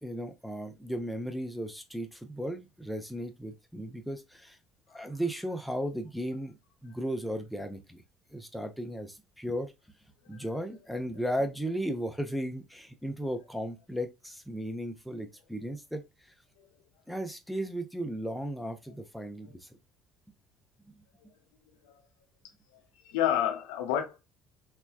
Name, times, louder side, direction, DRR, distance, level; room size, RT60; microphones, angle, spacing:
voice 1, 0.0-4.6 4.9-8.0 8.3-9.7 10.3-16.0 17.1-19.7 20.8-20.9, equal, ahead, 0.7 m, -35 dB
voice 2, 23.0-24.2, left 10 dB, 70° left, 0.7 m, -29 dB
3.3 x 2.2 x 2.3 m
figure-of-eight pair, 60°, 0 cm